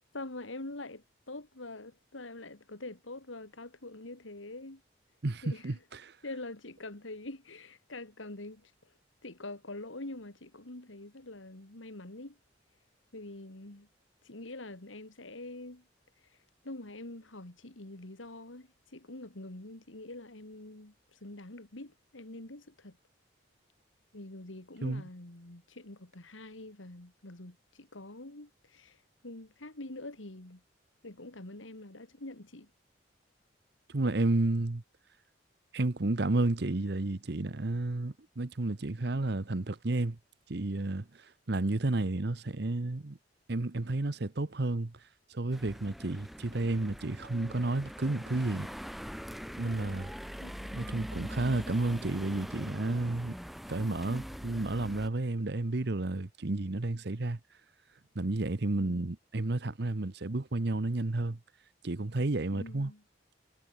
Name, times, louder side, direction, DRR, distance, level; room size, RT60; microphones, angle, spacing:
voice 1, 0.1-4.8 5.4-5.7 6.2-8.7 9.2-12.4 13.1-13.9 14.2-15.8 16.6-23.0 24.1-29.0 29.2-30.6 31.0-32.7 50.4-51.0 58.7-59.0 62.5-63.0, left 2 dB, 90° left, 2.6 m, -45 dB
voice 2, 5.2-6.2 24.8-25.0 33.9-34.8 35.7-40.2 40.5-43.2 43.5-45.0 45.3-48.7 49.6-50.1 50.7-53.4 53.7-57.4 58.1-61.4 61.8-62.9, right 2 dB, 60° right, 0.9 m, -31 dB
sound 1, 45.5-55.1, equal, ahead, 2.0 m, -43 dB
head